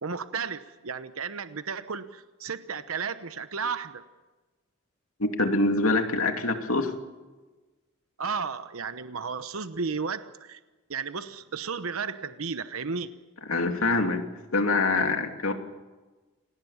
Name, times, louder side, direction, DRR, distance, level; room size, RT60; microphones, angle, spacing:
voice 1, 0.0-4.0 8.2-10.6 10.9-13.1, right 5 dB, 85° right, 11 dB, 1.0 m, -33 dB
voice 2, 5.2-6.9 13.5-14.3 14.5-15.5, left 2 dB, 85° left, 5 dB, 2.6 m, -25 dB
28.0 x 19.5 x 7.3 m, 1.2 s
head